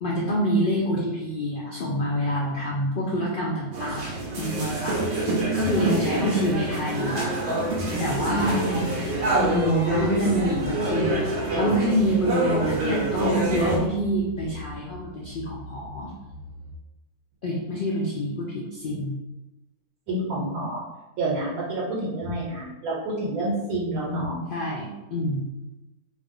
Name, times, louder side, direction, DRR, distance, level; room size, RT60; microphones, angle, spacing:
voice 1, 0.0-5.2 5.5-7.3 8.0-8.6 9.4-16.1 17.4-19.2 24.5-25.5, equal, 85° left, -4 dB, 0.4 m, -27 dB
sound 1, 3.7-13.8, right 2 dB, 60° right, 0.8 m, -26 dB
sound 2, 8.0-16.7, left 1 dB, 25° right, 0.4 m, -41 dB
voice 2, 8.2-8.8 20.1-20.8 21.2-24.4, right 1 dB, 75° right, -5 dB, 1.1 m, -28 dB
2.4 x 2.4 x 3.5 m, 1.0 s
omnidirectional pair, 1.5 m